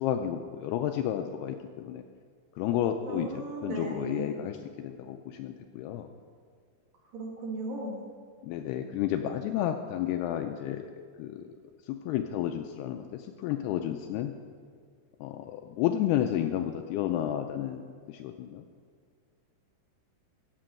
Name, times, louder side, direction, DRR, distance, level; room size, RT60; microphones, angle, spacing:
voice 1, 0.0-2.0 2.6-6.1 8.4-11.5 11.8-14.3 15.2-17.8 18.1-18.7, left 11 dB, 85° left, 6 dB, 2.3 m, -31 dB
voice 2, 3.0-4.3 7.1-8.0, right 2 dB, 60° right, -2 dB, 3.4 m, -36 dB
15.0 x 7.6 x 6.3 m, 2.1 s
omnidirectional pair, 5.0 m